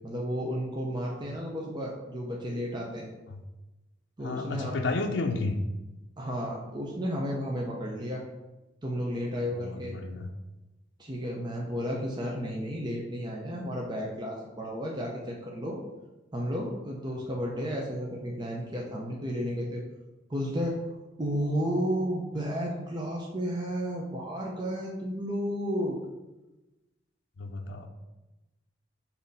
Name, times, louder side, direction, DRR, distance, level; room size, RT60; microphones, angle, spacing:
voice 1, 0.0-3.1 4.2-4.7 6.2-8.2 8.8-10.0 11.0-15.8 16.3-19.8 20.3-20.8 21.2-26.0, equal, 25° right, -2 dB, 0.8 m, -32 dB
voice 2, 4.2-5.6 9.6-10.3 27.4-27.9, left 3 dB, 70° left, 4 dB, 0.6 m, -32 dB
6.4 x 2.9 x 5.4 m, 1.1 s
head